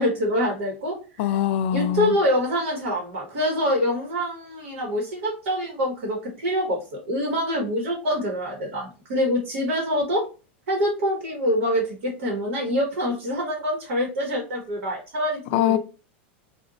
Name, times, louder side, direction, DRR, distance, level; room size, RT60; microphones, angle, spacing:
voice 1, 0.0-1.3 1.7-10.2 10.7-15.8, equal, 75° right, 1.3 m, -25 dB
voice 2, 1.2-2.1 15.5-15.8, left 11 dB, 60° left, 0.4 m, -22 dB
2.5 x 2.4 x 3.8 m
supercardioid pair, 130°, 7 cm